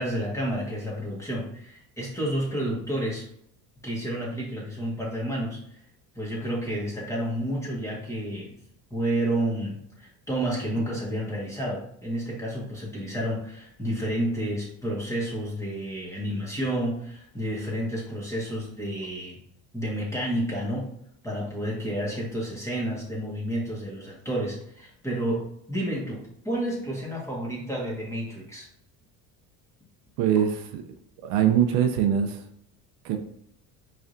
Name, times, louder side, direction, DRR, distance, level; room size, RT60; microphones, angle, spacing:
voice 1, 0.0-3.2 3.8-5.6 6.1-8.5 8.9-19.4 19.7-20.9 21.2-28.7, right 1 dB, 10° left, -4 dB, 1.6 m, -30 dB
voice 2, 30.2-30.8 31.2-32.4 33.0-33.2, right 9 dB, 70° right, 5 dB, 0.7 m, -22 dB
4.9 x 3.3 x 2.6 m, 0.71 s
cardioid pair, 125°, 38 cm